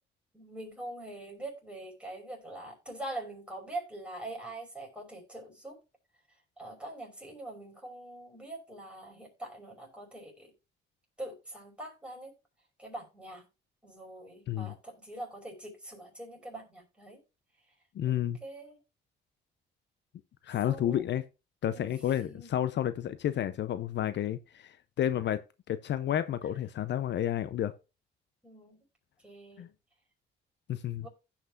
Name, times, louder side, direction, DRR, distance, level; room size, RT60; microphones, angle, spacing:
voice 1, 0.3-5.8 6.6-10.5 11.2-12.3 12.8-13.4 13.8-17.2 18.4-18.8 20.7-21.1 21.7-22.5 26.4-26.6 28.4-28.8 29.2-29.7 31.0-31.1, right 1 dB, 5° right, 5.5 m, -43 dB
voice 2, 17.9-18.4 20.4-21.2 21.6-27.7 29.6-29.7 30.7-31.1, left 11 dB, 60° left, 0.6 m, -31 dB
16.0 x 5.9 x 2.5 m
cardioid pair, 90°, 20 cm